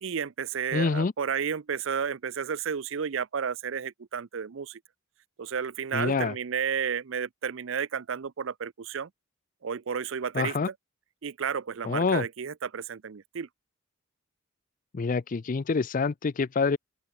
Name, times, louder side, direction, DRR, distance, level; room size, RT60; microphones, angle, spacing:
voice 1, 0.0-4.8 5.4-9.1 9.6-10.7 11.2-13.5, right 7 dB, 60° right, 0.5 m, -32 dB
voice 2, 0.7-1.1 5.9-6.3 10.3-10.7 11.9-12.2 14.9-16.8, left 4 dB, 40° left, 0.4 m, -26 dB
open air
head